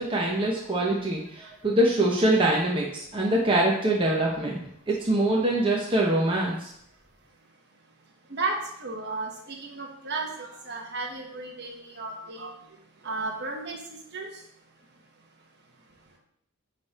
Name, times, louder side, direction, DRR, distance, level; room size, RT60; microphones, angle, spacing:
voice 1, 0.0-4.6 4.9-6.7, right 1 dB, 25° right, -3 dB, 0.9 m, -24 dB
voice 2, 8.3-12.5 13.0-13.8 14.1-14.3, right 3 dB, 50° right, 0 dB, 1.3 m, -33 dB
9.5 x 3.4 x 4.2 m, 0.73 s
head